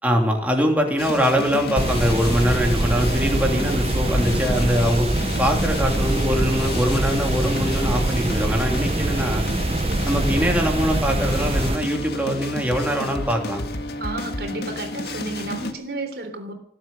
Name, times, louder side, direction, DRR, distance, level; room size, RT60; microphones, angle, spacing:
voice 1, 0.0-5.1 5.4-9.4 10.0-13.6, equal, 10° right, 1 dB, 3.0 m, -22 dB
sound 1, 1.0-15.7, left 2 dB, 65° left, 1.8 m, -31 dB
sound 2, 1.8-11.8, right 2 dB, 35° right, 0.7 m, -24 dB
voice 2, 14.0-16.5, right 2 dB, 65° right, 5 dB, 3.5 m, -32 dB
20.0 x 7.9 x 9.1 m, 0.73 s
head